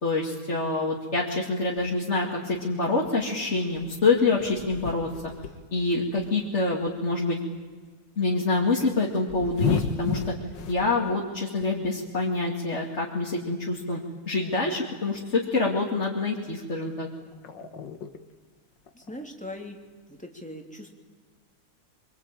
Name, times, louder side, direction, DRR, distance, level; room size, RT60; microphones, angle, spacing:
voice 1, 0.0-5.1 5.7-7.4 8.2-10.3 10.7-14.0 14.3-17.1, left 3 dB, 35° left, -3 dB, 2.7 m, -26 dB
sound 1, 1.8-2.7 3.1-7.3 7.6-7.9 8.9-10.9 11.3-11.9 13.0-13.1 13.5-13.6 14.0-14.1 14.4-15.7 16.8-16.9 17.2-18.3 18.9-19.3, left 6 dB, 60° left, 2.1 m, -34 dB
voice 2, 18.9-19.8 20.1-20.9, left 1 dB, 5° left, 2 dB, 2.9 m, -40 dB
25.5 x 24.5 x 9.1 m, 1.4 s
omnidirectional pair, 2.2 m